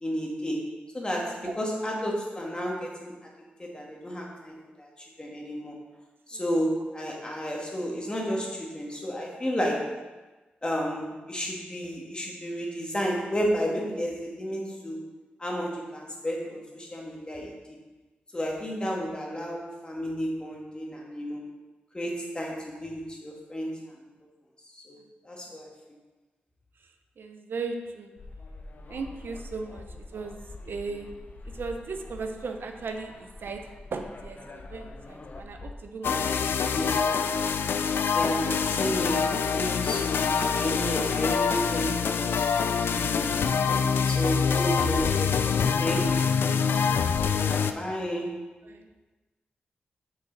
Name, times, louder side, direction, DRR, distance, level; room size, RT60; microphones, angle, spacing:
voice 1, 0.0-0.7 0.9-3.1 3.6-4.9 5.2-5.8 6.3-9.9 10.6-15.0 15.4-17.8 18.3-21.4 21.9-23.7 24.9-25.0 25.2-25.7 36.7-37.4 38.1-43.3 44.0-46.3 47.4-48.4, equal, 25° left, -1 dB, 1.6 m, -32 dB
voice 2, 27.2-28.2 28.9-29.9 30.1-30.4 30.7-31.1 31.4-36.2 46.6-47.3 48.6-48.9, right 4 dB, 70° right, 5 dB, 0.6 m, -37 dB
sound 1, 28.2-35.7, left 2 dB, 50° left, 0.6 m, -45 dB
sound 2, 36.0-47.7, left 6 dB, 85° left, 0.3 m, -25 dB
6.3 x 5.3 x 4.0 m, 1.2 s
cardioid pair, 70°, 4 cm